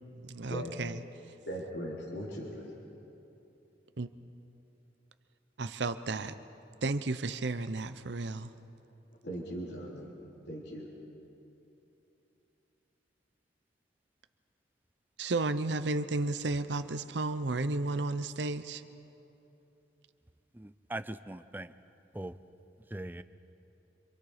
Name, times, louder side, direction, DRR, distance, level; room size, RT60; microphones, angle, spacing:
voice 1, 0.2-1.0 4.0-4.1 5.6-6.3 6.8-8.5 15.2-18.8, right 3 dB, 75° right, 11 dB, 0.7 m, -33 dB
voice 2, 1.5-2.7 9.2-10.1 10.5-10.9, equal, 70° left, -3 dB, 3.6 m, -39 dB
voice 3, 20.5-21.7 22.1-22.3 22.9-23.2, right 1 dB, 10° right, 12 dB, 0.5 m, -40 dB
27.0 x 26.5 x 5.0 m, 2.9 s
head